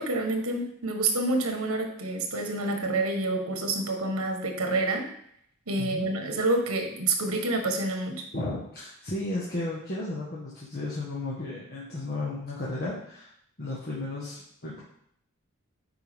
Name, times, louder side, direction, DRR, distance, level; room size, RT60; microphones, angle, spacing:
voice 1, 0.0-5.1 5.7-8.2, right 2 dB, 85° right, 4 dB, 1.4 m, -28 dB
voice 2, 5.8-6.1 8.3-13.3 13.6-14.8, left 2 dB, 45° left, -6 dB, 1.4 m, -34 dB
9.2 x 4.6 x 3.6 m, 0.69 s
head